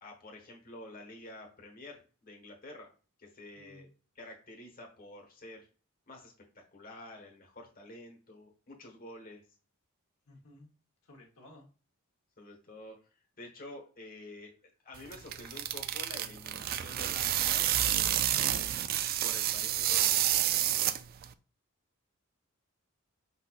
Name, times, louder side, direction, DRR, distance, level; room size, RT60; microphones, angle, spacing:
voice 1, 0.0-2.9 3.2-3.9 4.1-5.7 6.1-9.4 12.4-14.5 14.8-18.8 19.2-20.2, left 2 dB, 45° left, 0 dB, 1.2 m, -49 dB
voice 2, 3.5-3.9 10.3-10.7 11.0-11.7, left 1 dB, 80° left, 0 dB, 1.1 m, -55 dB
sound 1, 14.9-21.3, right 12 dB, 45° right, 0.3 m, -29 dB
5.3 x 4.1 x 2.4 m, 0.36 s
head